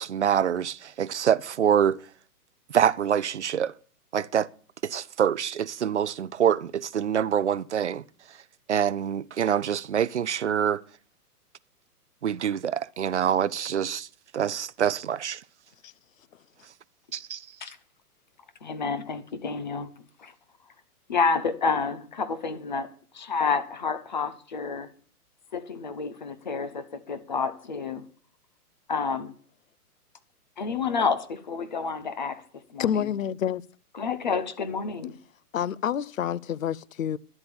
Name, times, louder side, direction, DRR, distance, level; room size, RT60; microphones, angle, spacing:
voice 1, 0.0-2.0 2.7-3.7 4.1-4.5 4.8-8.0 8.7-10.8 12.2-14.1 14.3-15.4 17.1-17.5, right 9 dB, 50° right, 0.5 m, -25 dB
voice 2, 18.6-19.9 20.2-20.3 21.1-22.9 23.1-24.9 25.5-28.0 28.9-29.4 30.6-32.4 32.7-33.1 33.9-35.1, left 5 dB, 30° left, 0.8 m, -29 dB
voice 3, 32.8-33.6 35.5-37.2, left 9 dB, 60° left, 0.6 m, -28 dB
11.0 x 7.9 x 6.9 m
hypercardioid pair, 175°, 46 cm